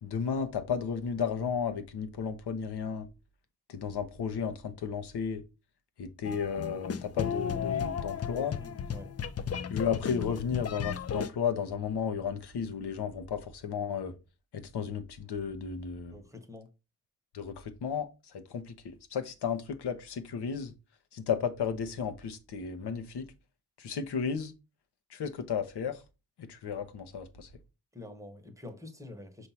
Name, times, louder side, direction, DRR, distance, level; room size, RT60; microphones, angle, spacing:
voice 1, 0.0-3.1 3.7-5.4 6.0-8.6 9.7-14.1 14.5-16.2 17.3-18.1 18.3-20.7 21.1-23.3 23.8-24.5 25.1-26.0 26.4-27.5, left 7 dB, 85° left, 1.1 m, -33 dB
sound 1, 6.2-11.3, left 7 dB, 40° left, 0.5 m, -34 dB
voice 2, 8.3-9.1 16.1-16.7 27.9-29.5, left 2 dB, 10° right, 1.1 m, -46 dB
6.5 x 2.7 x 5.7 m
wide cardioid pair, 115°, 39 cm